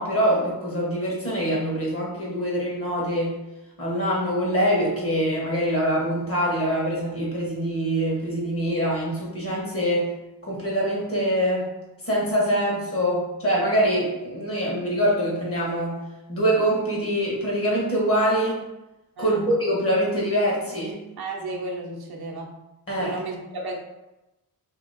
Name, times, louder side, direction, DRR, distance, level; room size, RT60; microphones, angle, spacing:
voice 1, 0.0-3.4 3.8-10.1 10.4-11.7 12.0-16.0 16.3-18.6 19.2-21.0 22.9-23.2, equal, 35° left, -4 dB, 1.3 m, -24 dB
voice 2, 19.2-19.5 21.2-22.5 23.0-23.8, right 2 dB, 70° right, -1 dB, 0.8 m, -33 dB
2.9 x 2.9 x 4.0 m, 0.98 s
wide cardioid pair, 120°, 40 cm